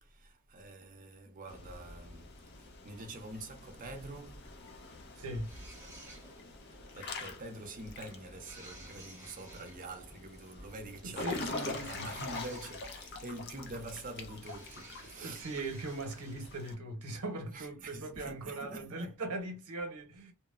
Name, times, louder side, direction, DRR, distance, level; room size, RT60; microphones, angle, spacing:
voice 1, 0.0-4.6 6.6-15.5 17.1-17.2 17.5-19.1, right 2 dB, 40° right, 0.6 m, -46 dB
Water / Splash splatter / Drip, 1.5-16.7, left 3 dB, 50° left, 0.5 m, -45 dB
voice 2, 5.1-5.5 11.0-12.3 15.2-20.3, right 2 dB, 90° right, 0.8 m, -40 dB
sound 1, 5.4-6.6 8.4-9.8 11.4-13.4 14.4-16.4, right 2 dB, 10° right, 0.9 m, -54 dB
2.9 x 2.1 x 2.3 m
head